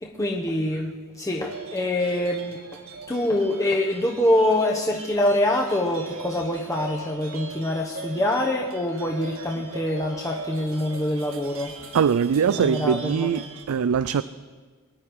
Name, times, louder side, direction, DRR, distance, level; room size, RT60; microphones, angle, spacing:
voice 1, 0.0-2.8 3.1-11.7 12.5-13.5, left 1 dB, 15° left, -1 dB, 1.1 m, -25 dB
sound 1, 1.5-13.6, right 4 dB, 65° right, 2.0 m, -40 dB
voice 2, 11.9-14.2, right 7 dB, 85° right, 15 dB, 0.4 m, -22 dB
23.0 x 10.5 x 4.8 m, 1.4 s
head